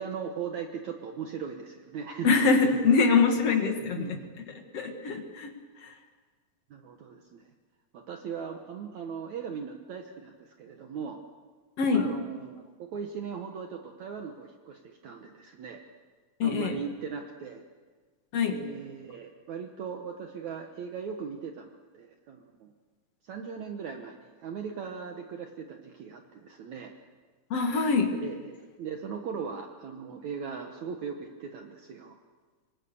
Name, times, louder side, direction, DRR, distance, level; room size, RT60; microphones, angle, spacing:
voice 1, 0.0-2.3 4.0-4.3 6.7-7.5 7.9-11.2 11.9-15.8 16.4-17.6 18.5-22.7 23.2-26.9 28.2-32.2, right 6 dB, 60° right, 4 dB, 2.1 m, -39 dB
voice 2, 2.2-5.5 5.8-5.9 11.8-12.1 16.4-16.8 18.3-18.6 27.5-28.2, left 4 dB, 45° left, 4 dB, 2.6 m, -24 dB
25.0 x 24.0 x 7.0 m, 1.4 s
omnidirectional pair, 4.4 m